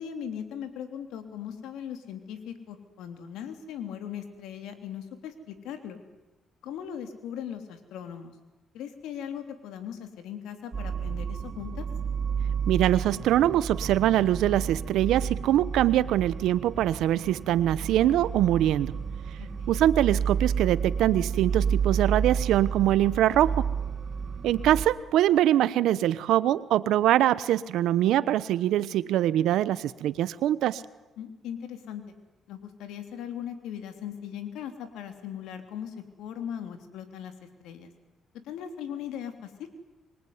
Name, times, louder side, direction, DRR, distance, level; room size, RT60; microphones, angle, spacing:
voice 1, 0.0-6.0 6.6-8.3 8.7-11.8 19.4-19.8 31.2-32.0 32.5-37.9 38.4-39.5, left 9 dB, 90° left, 8 dB, 3.4 m, -39 dB
sound 1, 10.7-24.9, right 6 dB, 40° right, 4.6 m, -31 dB
voice 2, 12.7-18.9 19.7-23.6 24.4-30.8, right 12 dB, 85° right, 16 dB, 1.1 m, -23 dB
25.5 x 23.0 x 9.7 m, 1.1 s
cardioid pair, 90°, 0 cm